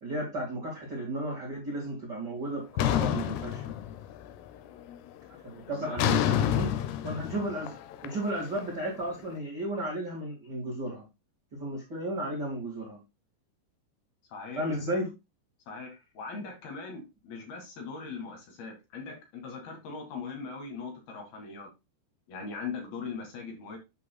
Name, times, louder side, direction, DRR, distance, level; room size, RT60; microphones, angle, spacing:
voice 1, 0.0-3.7 5.4-6.7 7.0-11.0 11.5-13.0 14.5-15.1, right 1 dB, 55° right, -3 dB, 1.1 m, -34 dB
sound 1, 2.8-4.3 4.7-5.1 6.0-9.0, left 11 dB, 80° left, 2.5 m, -29 dB
voice 2, 5.7-6.0 14.3-14.6 15.7-21.7 22.3-23.8, left 4 dB, 65° left, 2 dB, 3.3 m, -40 dB
8.3 x 6.2 x 2.2 m, 0.25 s
omnidirectional pair, 5.1 m